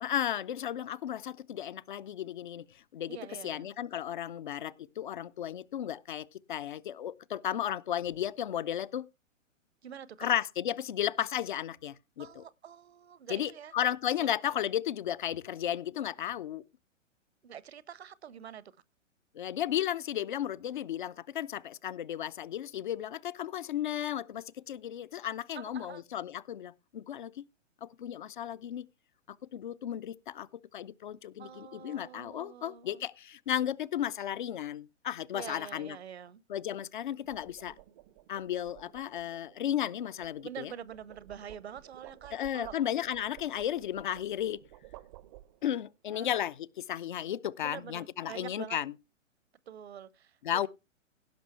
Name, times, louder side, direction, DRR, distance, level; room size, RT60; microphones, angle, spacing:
voice 1, 0.0-3.2 3.4-9.1 10.2-12.4 13.3-16.6 19.3-27.4 27.8-28.9 29.3-30.5 30.7-36.0 36.5-37.7 38.3-40.7 42.3-44.6 45.6-48.9 50.4-50.7, left 10 dB, 40° left, 0.6 m, -34 dB
voice 2, 3.1-3.7 9.8-10.3 12.2-13.7 14.2-14.6 17.4-18.7 25.5-26.0 31.4-33.0 35.3-36.4 40.4-42.8 46.1-46.3 47.6-48.8 49.7-50.7, right 9 dB, 55° right, 0.9 m, -46 dB
sound 1, 31.6-31.9 37.0-45.9, right 15 dB, 25° right, 0.6 m, -55 dB
16.5 x 6.0 x 4.4 m
figure-of-eight pair, 115°, 38 cm